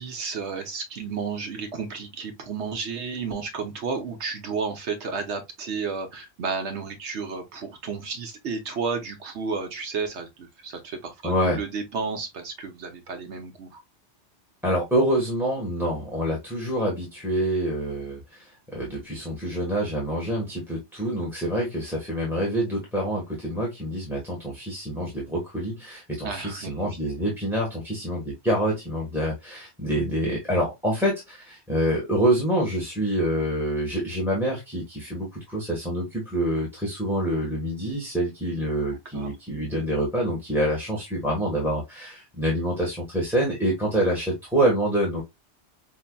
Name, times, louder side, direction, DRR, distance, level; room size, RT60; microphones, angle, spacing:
voice 1, 0.0-13.8 26.2-26.7 39.1-39.3, right 5 dB, 75° right, 1.0 m, -32 dB
voice 2, 11.2-11.6 14.6-45.2, right 1 dB, ahead, 1.2 m, -26 dB
5.4 x 2.6 x 2.2 m
omnidirectional pair, 1.2 m